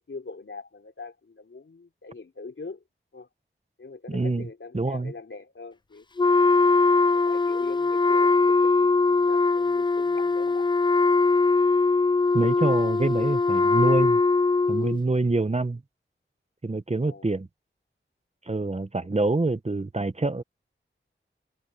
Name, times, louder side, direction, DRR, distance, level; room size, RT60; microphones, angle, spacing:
voice 1, 0.0-2.8 3.1-3.3 3.8-6.4 7.1-10.7 17.0-17.3, left 4 dB, 70° left, 3.6 m, -42 dB
voice 2, 4.1-4.4 4.7-5.1 12.3-14.2 14.7-15.8 16.6-17.5 18.5-20.4, right 2 dB, 30° right, 1.0 m, -26 dB
Wind instrument woodwind instrument, 6.2-15.0, left 3 dB, 20° left, 0.4 m, -21 dB
wide cardioid pair, 65°, 21 cm